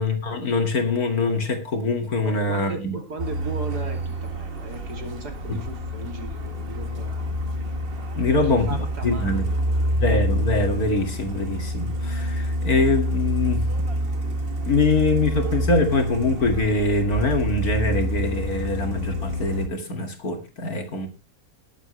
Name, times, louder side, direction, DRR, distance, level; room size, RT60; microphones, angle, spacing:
voice 1, 0.0-2.9 5.5-5.6 8.2-8.7 9.0-9.5 9.9-13.9 14.7-21.1, left 3 dB, 65° left, 2.7 m, -23 dB
voice 2, 2.2-7.4 8.2-10.0, right 3 dB, 80° right, 3.2 m, -37 dB
Truck, 3.2-19.7, equal, 40° right, 1.4 m, -27 dB
19.5 x 8.2 x 3.2 m
omnidirectional pair, 1.7 m